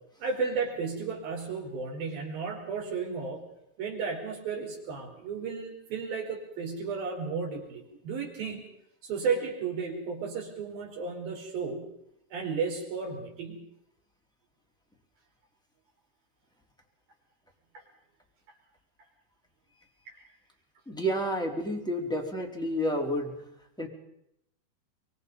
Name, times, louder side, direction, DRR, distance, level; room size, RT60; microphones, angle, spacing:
voice 1, 0.2-3.5 3.8-8.6 9.0-11.9 12.3-13.7 17.7-17.8 20.1-20.2, right 5 dB, 65° right, 1 dB, 6.4 m, -33 dB
voice 2, 20.8-23.4 23.8-23.9, equal, ahead, -1 dB, 3.3 m, -30 dB
25.0 x 23.5 x 5.5 m, 0.78 s
omnidirectional pair, 4.4 m